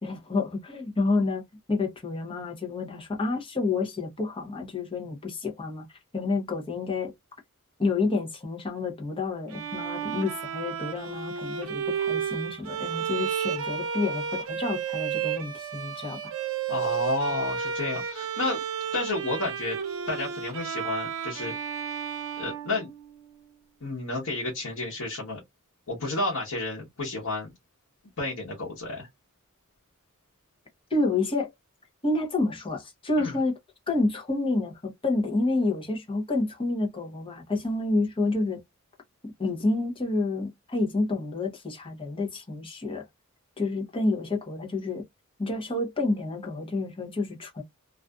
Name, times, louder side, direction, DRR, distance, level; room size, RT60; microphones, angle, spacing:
voice 1, 0.0-1.4 1.7-5.8 6.1-7.1 7.8-16.3 30.9-31.5 32.0-33.6 33.9-38.6 39.2-43.0 43.6-45.0 45.4-47.6, left 3 dB, 25° left, 0.8 m, -29 dB
Bowed string instrument, 9.5-23.4, right 8 dB, 75° right, 0.6 m, -32 dB
voice 2, 16.7-18.6 18.9-19.8 20.1-21.5 22.4-22.9 23.8-25.4 25.9-27.5 28.2-29.1 33.2-33.3, left 2 dB, 85° left, 1.0 m, -31 dB
2.5 x 2.4 x 2.2 m
head